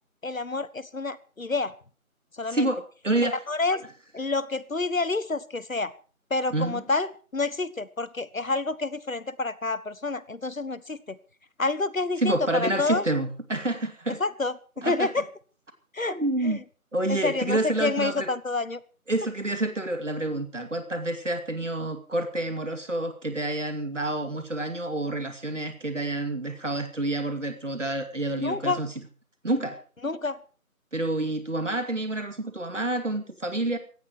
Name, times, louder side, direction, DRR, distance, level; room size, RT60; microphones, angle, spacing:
voice 1, 0.2-1.7 2.3-2.7 3.5-3.9 4.1-5.9 6.3-11.2 11.6-13.1 14.2-15.3 15.9-16.2 16.4-16.6 17.1-18.8 28.4-28.8 30.0-30.4, left 3 dB, 65° left, 18 dB, 1.4 m, -28 dB
voice 2, 2.5-3.4 6.5-6.8 12.2-14.2 14.8-15.1 16.1-16.6 16.9-18.3 19.1-28.9 29.4-29.8 30.9-33.8, right 2 dB, 55° right, 8 dB, 2.7 m, -28 dB
17.0 x 14.0 x 4.6 m, 0.38 s
figure-of-eight pair, 170°, 44 cm